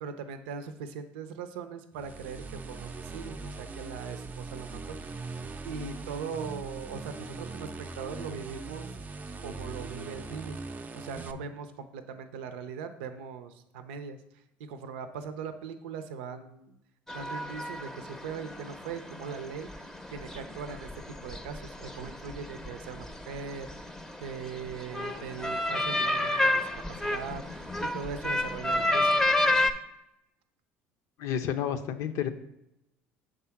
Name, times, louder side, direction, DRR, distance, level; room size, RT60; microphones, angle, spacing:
voice 1, 0.0-5.3 5.6-8.9 9.4-10.6 10.9-14.2 14.7-16.8 17.1-23.9 24.2-29.2, right 6 dB, 80° right, 9 dB, 0.6 m, -40 dB
sound 1, 1.9-11.3, right 3 dB, 30° right, 0.6 m, -41 dB
sound 2, 17.1-29.7, left 1 dB, 5° left, 0.7 m, -31 dB
voice 2, 31.2-32.3, left 9 dB, 65° left, 10 dB, 0.6 m, -30 dB
6.7 x 3.7 x 5.7 m, 0.85 s
hypercardioid pair, 70°, 6 cm